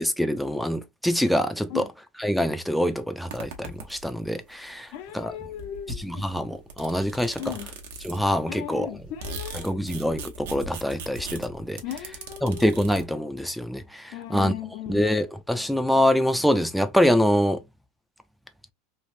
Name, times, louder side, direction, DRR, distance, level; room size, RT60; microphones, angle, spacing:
voice 1, 0.0-1.8 2.2-4.9 5.1-5.3 6.1-7.4 8.0-8.9 9.6-11.8 12.4-14.5 14.9-17.6, equal, ahead, 0.4 m, -25 dB
sound 1, 3.3-4.3 5.1-5.2 5.4-8.4 8.8-13.0, right 2 dB, 75° right, 0.8 m, -39 dB
voice 2, 4.9-6.4 7.4-7.7 8.5-9.9 11.8-12.7 14.1-15.0, left 10 dB, 60° left, 0.6 m, -37 dB
3.2 x 2.4 x 2.6 m
hypercardioid pair, 105°, 0 cm